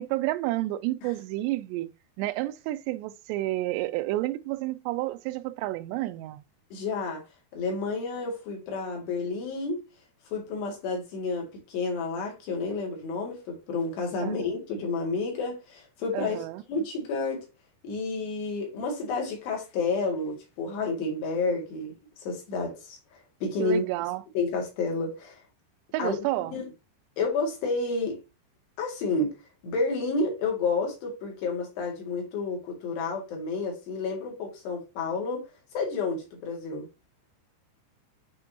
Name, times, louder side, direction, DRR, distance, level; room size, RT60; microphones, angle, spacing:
voice 1, 0.0-1.9 2.2-6.4 14.2-14.5 16.1-16.6 23.6-24.2 25.9-26.6, right 17 dB, 90° right, 2.8 m, -30 dB
voice 2, 6.7-7.2 7.5-9.8 10.3-16.4 16.7-17.5 17.8-21.9 22.2-23.9 24.3-25.4 26.0-26.2 26.5-26.7 27.2-28.2 28.8-29.4 29.6-35.4 35.7-36.9, left 3 dB, 80° left, 4.4 m, -30 dB
8.5 x 4.4 x 2.8 m
omnidirectional pair, 4.8 m